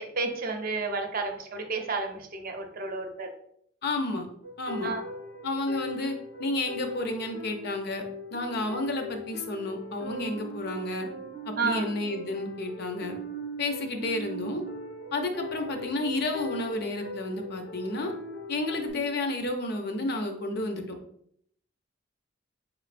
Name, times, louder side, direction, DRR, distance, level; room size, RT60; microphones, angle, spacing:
voice 1, 0.0-3.3 4.8-5.0 11.6-11.9, right 3 dB, 50° right, 5 dB, 0.6 m, -31 dB
voice 2, 3.8-4.3 4.6-4.9 5.4-8.0 8.3-11.1 11.5-13.2 13.6-14.6 15.1-18.1 18.5-20.8, left 2 dB, 55° left, 5 dB, 0.6 m, -31 dB
sound 1, 4.4-18.9, left 1 dB, 90° left, 1.6 m, -40 dB
4.8 x 3.1 x 2.5 m, 0.67 s
head